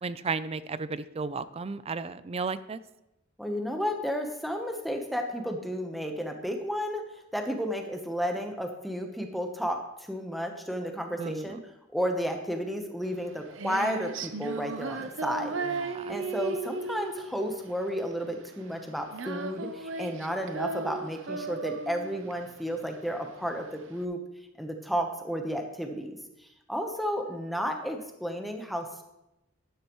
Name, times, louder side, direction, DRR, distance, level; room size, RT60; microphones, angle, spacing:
voice 1, 0.0-2.8 11.2-11.6 15.6-16.2, right 4 dB, 30° right, 15 dB, 0.4 m, -34 dB
voice 2, 3.4-7.0 7.3-9.8 10.1-11.6 11.9-15.8 16.1-24.2 24.6-29.0, equal, ahead, 3 dB, 1.0 m, -32 dB
Female singing, 13.1-24.0, right 4 dB, 70° right, 0.7 m, -36 dB
12.0 x 10.5 x 3.1 m, 0.89 s
head